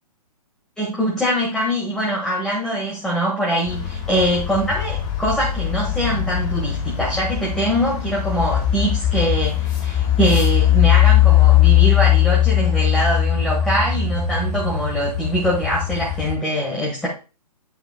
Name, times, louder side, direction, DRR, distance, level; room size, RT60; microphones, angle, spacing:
voice 1, 0.8-17.1, right 1 dB, 5° left, -4 dB, 1.8 m, -23 dB
sound 1, 3.6-16.4, left 12 dB, 30° left, 1.7 m, -19 dB
12.0 x 4.9 x 2.3 m, 0.32 s
figure-of-eight pair, 120°, 20 cm